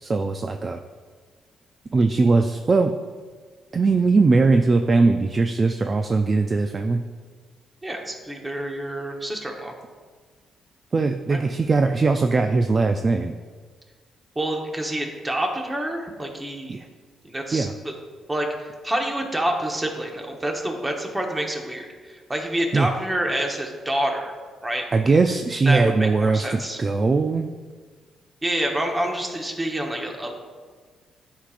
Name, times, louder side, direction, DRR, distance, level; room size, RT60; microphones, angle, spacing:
voice 1, 0.0-0.8 1.9-2.9 3.7-7.0 10.9-13.3 16.7-16.9 17.5-17.7 22.7-22.9 24.9-27.5, right 3 dB, 35° right, 6 dB, 0.3 m, -20 dB
voice 2, 7.8-9.7 11.3-11.4 14.3-16.7 17.2-17.9 18.3-24.3 24.6-24.8 25.7-26.8 28.4-30.3, right 1 dB, 15° right, 1 dB, 1.1 m, -27 dB
10.0 x 4.9 x 2.5 m, 1.5 s
cardioid pair, 90°, 0 cm